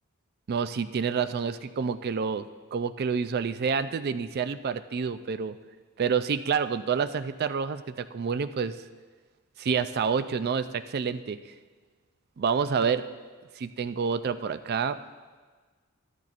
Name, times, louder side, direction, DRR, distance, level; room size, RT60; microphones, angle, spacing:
voice 1, 0.5-5.6 6.0-8.7 9.6-11.4 12.4-13.0 13.6-15.0, right 6 dB, 50° right, 12 dB, 0.4 m, -28 dB
13.5 x 13.5 x 2.5 m, 1.4 s
head